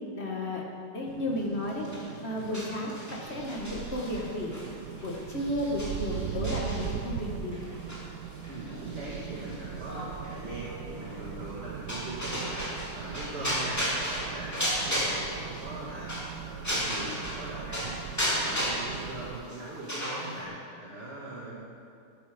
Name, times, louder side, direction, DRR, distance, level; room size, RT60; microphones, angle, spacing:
voice 1, 0.1-0.6 0.9-1.9 2.2-4.5 5.0-7.6, left 1 dB, 40° left, -2 dB, 2.1 m, -33 dB
sound 1, 1.1-19.4, right 9 dB, 75° right, 1.1 m, -40 dB
sound 2, 1.7-17.4 17.7-20.4, equal, 10° left, 2.7 m, -35 dB
voice 2, 8.5-13.8 14.1-16.1 16.3-18.0 18.2-20.5 20.8-21.6, right 1 dB, 40° right, -6 dB, 2.2 m, -40 dB
12.5 x 12.0 x 5.2 m, 2.5 s
omnidirectional pair, 1.7 m